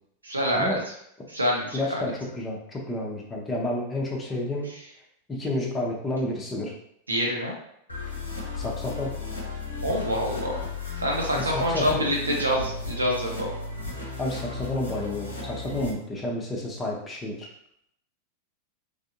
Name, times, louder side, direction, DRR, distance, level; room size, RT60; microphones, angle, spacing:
voice 1, 0.2-0.9 1.3-2.0 7.1-7.5 9.8-10.6 11.0-13.5, equal, 80° right, -1 dB, 0.6 m, -26 dB
voice 2, 1.7-4.7 5.3-6.7 8.6-9.1 11.3-12.1 14.2-17.5, left 1 dB, 15° left, -2 dB, 0.8 m, -30 dB
sound 1, 7.9-15.9, left 3 dB, 80° left, 0.8 m, -34 dB
3.2 x 2.6 x 2.6 m, 0.72 s
figure-of-eight pair, 90°, 0 cm